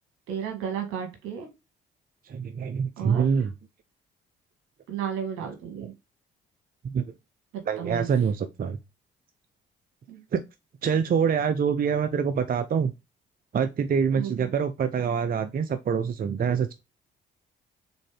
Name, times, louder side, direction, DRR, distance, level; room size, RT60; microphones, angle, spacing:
voice 1, 0.3-1.5 3.0-3.3 4.9-5.9 7.8-8.1 10.1-10.2 14.1-14.6, right 8 dB, 75° right, 1.7 m, -33 dB
voice 2, 2.3-3.5 5.8-5.9 6.8-7.0 7.7-8.8 10.3-10.4 10.8-12.9 13.5-16.7, right 6 dB, 45° right, 0.6 m, -25 dB
4.1 x 3.7 x 3.3 m
hypercardioid pair, 55°, 21 cm